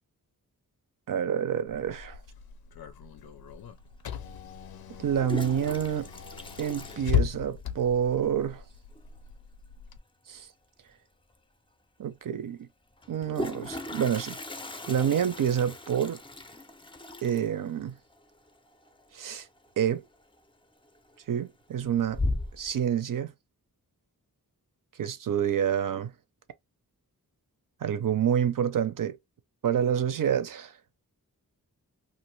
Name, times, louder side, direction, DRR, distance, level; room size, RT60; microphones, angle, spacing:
voice 1, 1.1-2.2 5.0-6.1 6.6-8.6 10.3-10.5 12.0-12.7 13.1-14.3 14.9-16.2 17.2-18.0 19.1-19.5 19.8-20.0 21.3-22.2 22.6-23.3 25.0-26.1 27.8-29.2 29.6-30.7, right 9 dB, 60° right, 0.5 m, -28 dB
Car / Engine, 1.7-10.0, left 9 dB, 90° left, 0.5 m, -36 dB
Toilet flush, 3.6-3.7 4.9-7.8 8.0-8.1 8.4-8.5 8.8-9.2 10.9-11.0 11.3-11.4 13.0-19.7 19.9-20.4 20.8-21.3 21.7-22.7, left 2 dB, 15° left, 0.4 m, -38 dB
2.5 x 2.5 x 3.1 m
wide cardioid pair, 80°, 36 cm